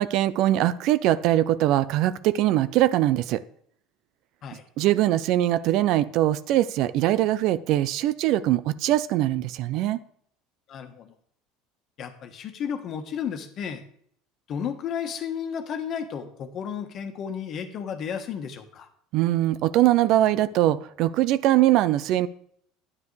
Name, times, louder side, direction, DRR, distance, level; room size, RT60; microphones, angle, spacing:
voice 1, 0.0-3.4 4.8-10.0 19.1-22.3, right 14 dB, 65° right, 15 dB, 0.5 m, -22 dB
voice 2, 10.7-11.1 12.0-13.8 14.5-18.9, left 7 dB, 50° left, 7 dB, 1.3 m, -33 dB
9.6 x 9.4 x 3.3 m, 0.64 s
supercardioid pair, 95°, 0 cm